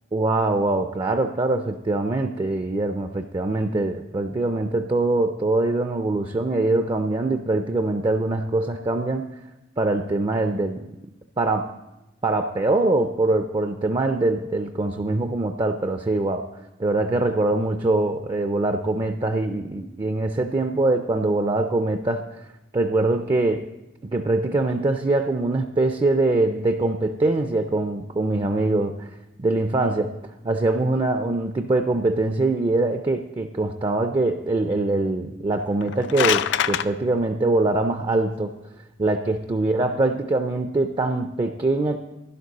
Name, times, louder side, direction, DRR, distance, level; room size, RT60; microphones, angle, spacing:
voice 1, 0.1-9.3 9.8-10.8 11.4-11.7 12.2-16.5 16.8-22.3 22.7-23.7 24.1-29.1 29.4-30.2 30.4-38.5 39.0-42.0, right 2 dB, 25° right, 7 dB, 0.4 m, -23 dB
sound 1, 35.7-36.9, left 10 dB, 65° left, 0.3 m, -23 dB
11.0 x 11.0 x 4.0 m, 0.99 s
head